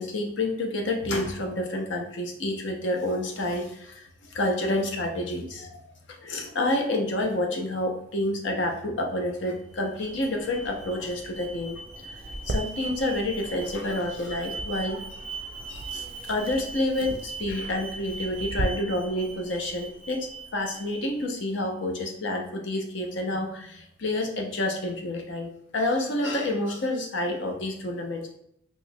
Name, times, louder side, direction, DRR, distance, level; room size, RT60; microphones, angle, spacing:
voice 1, 0.0-5.8 6.1-15.2 15.7-28.4, left 1 dB, 70° left, 3 dB, 0.7 m, -29 dB
Alarm, 9.5-21.5, right 3 dB, 5° right, 0.7 m, -41 dB
sound 1, 12.2-18.6, right 1 dB, 50° right, 0.4 m, -38 dB
4.4 x 2.9 x 2.2 m, 0.73 s
head